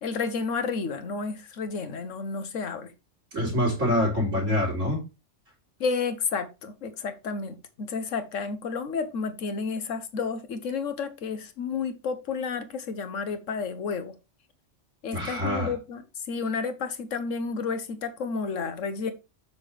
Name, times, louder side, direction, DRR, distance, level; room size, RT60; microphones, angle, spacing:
voice 1, 0.0-2.9 5.8-14.2 15.0-19.1, left 5 dB, 85° left, 1.3 m, -31 dB
voice 2, 3.3-5.0 15.1-15.7, left 1 dB, 90° right, 3.2 m, -25 dB
7.4 x 6.1 x 3.3 m
omnidirectional pair, 1.3 m